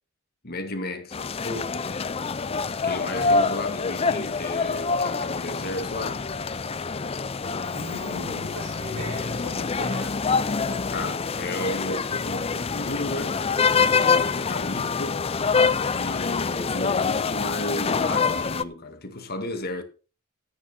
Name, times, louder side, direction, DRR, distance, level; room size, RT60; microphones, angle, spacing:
voice 1, 0.4-1.8 2.8-6.2 10.9-13.4 13.9-15.6 15.9-19.8, left 1 dB, 45° left, 2.0 m, -33 dB
sound 1, 1.1-18.6, left 5 dB, 25° left, 0.5 m, -26 dB
voice 2, 2.8-3.5 7.7-10.2 10.6-10.9 11.6-11.7 15.8-16.0, equal, 90° right, 5.6 m, -38 dB
14.0 x 8.9 x 4.3 m
head